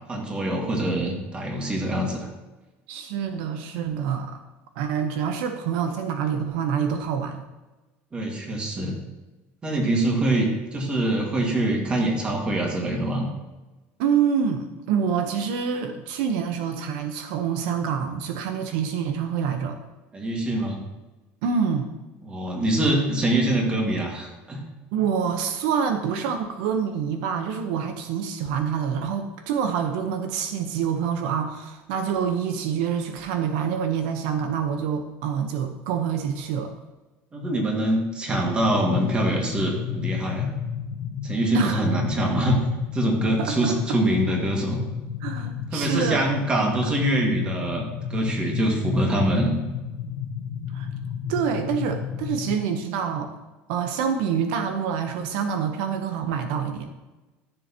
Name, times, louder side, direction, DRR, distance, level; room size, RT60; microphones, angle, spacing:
voice 1, 0.1-2.3 8.1-8.9 9.6-13.3 20.1-20.8 22.2-24.7 37.3-40.5 41.2-42.7 42.9-44.8 45.7-49.5, right 1 dB, 20° right, 0 dB, 1.9 m, -24 dB
voice 2, 2.9-4.4 4.8-7.4 14.0-19.8 21.4-21.9 24.9-36.7 41.5-41.8 43.4-43.7 45.2-46.2 50.7-50.9 51.3-53.3 53.7-56.9, right 7 dB, 80° right, 6 dB, 0.9 m, -26 dB
sound 1, 38.7-52.6, left 8 dB, 80° left, 1.0 m, -31 dB
14.0 x 6.9 x 3.0 m, 1.1 s
cardioid pair, 150°, 5 cm